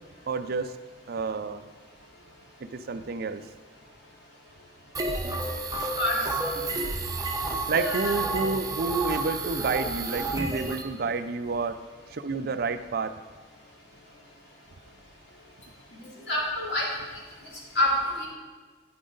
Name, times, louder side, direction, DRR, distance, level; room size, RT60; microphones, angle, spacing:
voice 1, 0.3-0.7 1.1-1.6 2.7-3.4 7.7-11.8 12.1-13.1, right 4 dB, 55° right, 11 dB, 0.5 m, -29 dB
sound 1, 4.9-10.8, right 3 dB, 20° right, 0.9 m, -30 dB
voice 2, 7.7-8.2 16.3-16.8 17.7-18.3, left 1 dB, 65° left, -4 dB, 3.1 m, -26 dB
10.0 x 9.6 x 3.9 m, 1.3 s
head